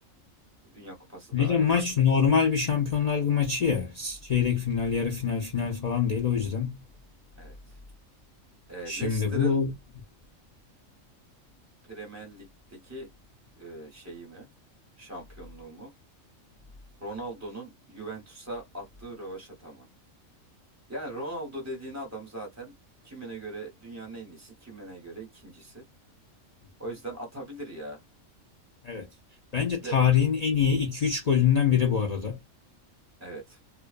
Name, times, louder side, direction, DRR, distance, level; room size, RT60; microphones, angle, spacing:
voice 1, 0.7-1.7 7.4-7.8 8.7-9.6 11.8-13.1 13.6-14.5 15.0-15.9 17.0-19.9 20.9-22.7 23.0-25.9 26.8-28.0 29.8-30.0 33.2-33.6, right 2 dB, 15° right, 1.2 m, -40 dB
voice 2, 1.3-6.8 8.9-9.7 28.8-29.1 29.5-32.4, left 7 dB, 70° left, 0.3 m, -25 dB
2.4 x 2.2 x 2.4 m
omnidirectional pair, 1.4 m